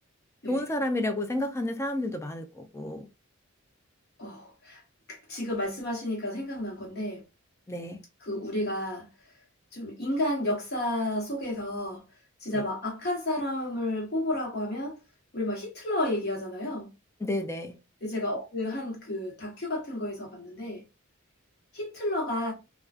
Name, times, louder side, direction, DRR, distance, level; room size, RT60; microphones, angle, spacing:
voice 1, 0.5-3.1 7.7-8.0 17.2-17.8, left 1 dB, 15° left, 0.3 m, -30 dB
voice 2, 4.2-4.8 5.1-7.2 8.2-9.1 9.7-12.0 12.4-15.0 15.3-16.9 18.0-20.8 21.7-22.5, left 1 dB, 50° left, 1.0 m, -31 dB
2.4 x 2.2 x 2.4 m
head